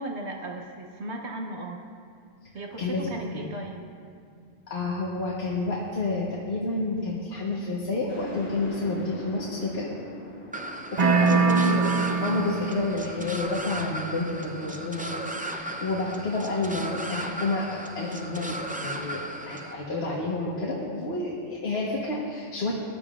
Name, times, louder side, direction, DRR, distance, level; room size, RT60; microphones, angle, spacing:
voice 1, 0.0-1.9 2.5-3.8, right 2 dB, 70° right, 1 dB, 1.2 m, -36 dB
voice 2, 2.8-3.5 4.7-9.9 10.9-22.7, left 2 dB, 60° left, -4 dB, 1.5 m, -30 dB
sound 1, 8.1-14.8, right 1 dB, 85° left, 4.2 m, -42 dB
sound 2, 10.5-19.7, right 1 dB, 10° right, 0.4 m, -36 dB
sound 3, 11.0-12.9, right 5 dB, 40° right, 0.7 m, -22 dB
20.5 x 12.0 x 2.5 m, 2.2 s
omnidirectional pair, 1.2 m